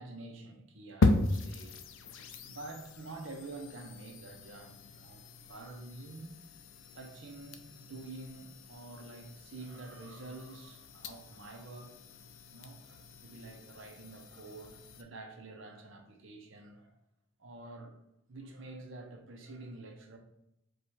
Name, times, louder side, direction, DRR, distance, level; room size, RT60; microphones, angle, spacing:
voice 1, 0.0-1.8 2.4-5.2 5.5-6.4 6.9-12.0 12.5-17.0 17.4-18.0 18.3-20.2, right 2 dB, 70° right, 0.8 m, -48 dB
sound 1, 1.0-15.0, left 3 dB, 70° left, 0.4 m, -37 dB
4.8 x 2.3 x 4.2 m
head